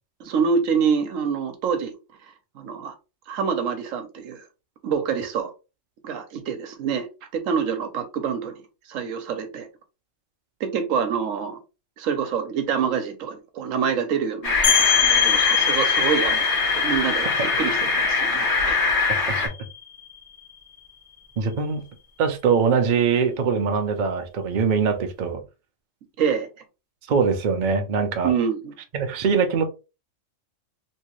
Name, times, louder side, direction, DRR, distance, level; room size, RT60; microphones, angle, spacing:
voice 1, 0.2-2.0 2.5-2.9 3.3-4.4 4.8-5.5 6.0-7.1 7.3-8.6 8.9-9.7 10.6-11.6 12.0-18.9 26.2-26.5 28.2-28.7, right 6 dB, 90° right, 1.1 m, -26 dB
sound 1, 14.4-19.5, left 4 dB, 60° left, 1.5 m, -23 dB
sound 2, 14.6-20.1, left 8 dB, 45° left, 0.8 m, -24 dB
voice 2, 21.4-21.8 22.2-25.4 27.1-28.3 28.9-29.6, right 5 dB, 50° right, 0.6 m, -22 dB
3.2 x 2.8 x 3.0 m
omnidirectional pair, 1.3 m